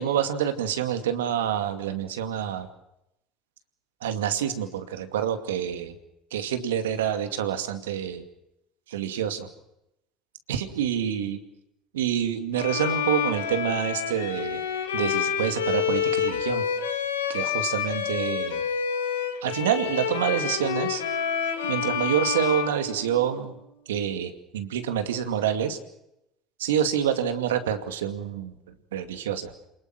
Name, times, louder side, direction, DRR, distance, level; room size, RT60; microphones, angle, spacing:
voice 1, 0.0-2.7 4.0-5.9 6.3-8.2 8.9-9.5 10.5-11.4 11.9-14.6 14.9-16.6 17.3-18.6 19.4-21.0 21.7-23.5 23.9-25.8 26.6-28.5 28.9-29.5, right 9 dB, 85° right, 9 dB, 2.4 m, -27 dB
Bowed string instrument, 12.5-23.5, left 7 dB, 90° left, 2.8 m, -28 dB
28.5 x 20.0 x 6.0 m, 0.84 s
hypercardioid pair, 75°, 0 cm